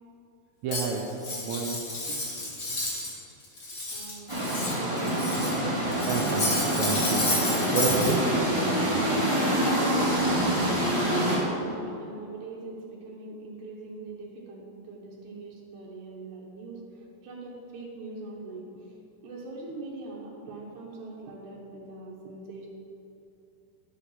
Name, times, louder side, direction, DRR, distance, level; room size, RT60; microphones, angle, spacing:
voice 1, 0.6-1.0 1.4-1.8 6.0-7.3 7.7-8.2, right 5 dB, 85° right, -1 dB, 1.6 m, -29 dB
Cutlery silverware, 0.7-3.2 3.4-5.6 5.9-8.1, left 2 dB, 75° left, 0.7 m, -31 dB
voice 2, 3.9-5.0 5.5-5.6 9.3-10.1 10.7-16.8 17.2-18.7 19.2-22.7, right 3 dB, 70° right, -4 dB, 2.2 m, -42 dB
sound 1, 4.3-11.4, right 1 dB, 20° right, 0.8 m, -26 dB
11.0 x 5.0 x 5.6 m, 2.8 s
omnidirectional pair, 4.1 m